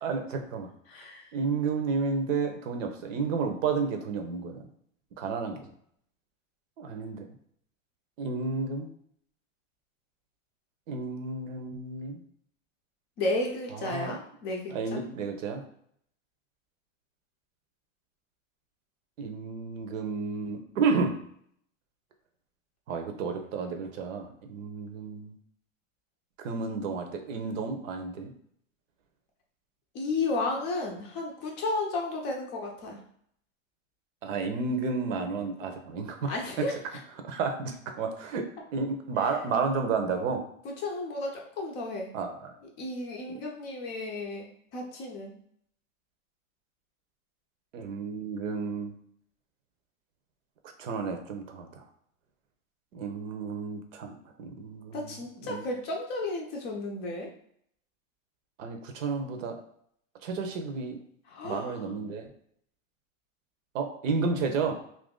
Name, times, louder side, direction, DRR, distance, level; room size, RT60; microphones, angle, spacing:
voice 1, 0.0-0.7 1.3-4.7 5.2-5.7 6.8-7.3 8.2-8.9 10.9-12.2 13.8-14.2 14.7-15.6 19.2-21.2 22.9-25.3 26.4-28.3 34.2-36.3 37.2-40.4 42.1-42.5 47.7-48.9 50.8-51.9 52.9-55.2 55.4-55.6 58.6-59.6 60.2-61.0 61.4-62.3 63.7-64.7, right 4 dB, 70° right, 5 dB, 0.8 m, -31 dB
voice 2, 0.9-1.3 13.2-15.0 29.9-33.0 36.2-37.0 40.6-42.1 42.8-45.3 54.9-57.3 61.3-61.9, left 2 dB, 25° left, 0 dB, 0.5 m, -33 dB
2.8 x 2.6 x 3.6 m, 0.67 s
supercardioid pair, 145°, 40 cm